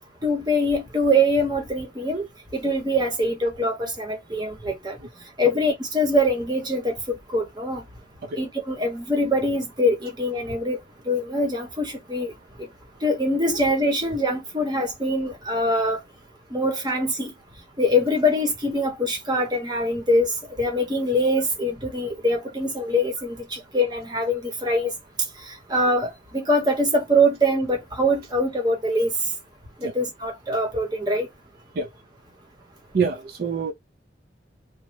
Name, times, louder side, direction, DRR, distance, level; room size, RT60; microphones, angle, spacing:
voice 1, 0.2-2.3 2.5-5.0 5.4-7.8 8.4-10.8 11.0-12.3 13.0-16.0 16.5-17.3 17.8-24.9 25.4-29.1 29.8-31.3, equal, 20° right, 0.9 m, -23 dB
voice 2, 32.9-33.7, right 5 dB, 55° right, 0.4 m, -25 dB
3.0 x 2.1 x 3.2 m
head